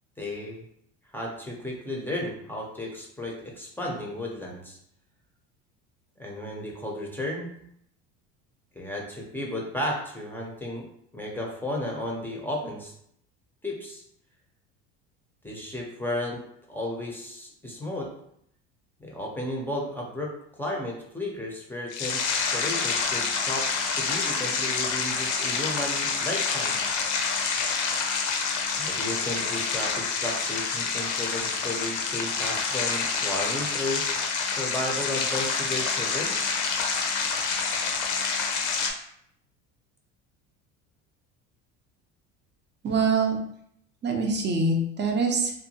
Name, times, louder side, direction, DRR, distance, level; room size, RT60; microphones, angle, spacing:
voice 1, 0.2-0.6 1.1-4.8 6.2-7.5 8.7-10.9 11.1-12.9 13.6-14.0 15.4-18.1 19.0-20.3 20.6-22.2 22.5-26.8 28.7-34.0 34.5-36.3, left 1 dB, 5° left, -2 dB, 0.7 m, -33 dB
sound 1, 21.9-38.9, left 5 dB, 60° left, 0.6 m, -27 dB
voice 2, 42.8-43.4 44.0-45.5, right 3 dB, 35° right, 2 dB, 0.6 m, -24 dB
2.6 x 2.2 x 2.8 m, 0.71 s
supercardioid pair, 100°, 33 cm